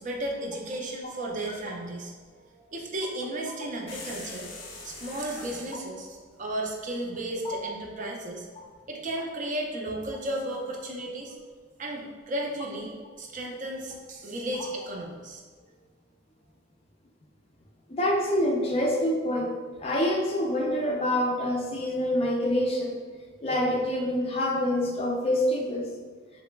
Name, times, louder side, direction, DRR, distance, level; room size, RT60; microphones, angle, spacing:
voice 1, 0.0-8.5 8.9-11.3 11.8-15.4, right 1 dB, 45° right, 0 dB, 0.4 m, -34 dB
sound 1, 3.9-5.7, left 3 dB, 85° left, 0.6 m, -42 dB
voice 2, 17.9-23.0 23.4-25.9, left 1 dB, 30° left, 0 dB, 0.4 m, -26 dB
3.3 x 2.9 x 2.2 m, 1.5 s
head